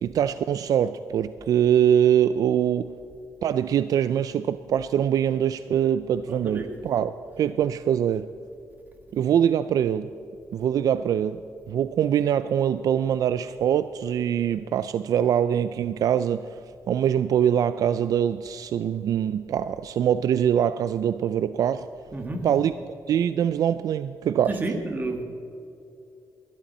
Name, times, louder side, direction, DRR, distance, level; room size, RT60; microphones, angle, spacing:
voice 1, 0.0-2.9 3.4-8.3 9.1-10.1 10.5-11.4 11.7-16.6 16.9-21.9 22.4-22.7 23.1-24.6, right 9 dB, 70° right, 13 dB, 0.4 m, -23 dB
voice 2, 6.3-6.8 22.1-22.5 24.5-25.2, right 2 dB, 30° right, 4 dB, 1.9 m, -31 dB
21.0 x 11.5 x 4.3 m, 2.6 s
cardioid pair, 125°, 6 cm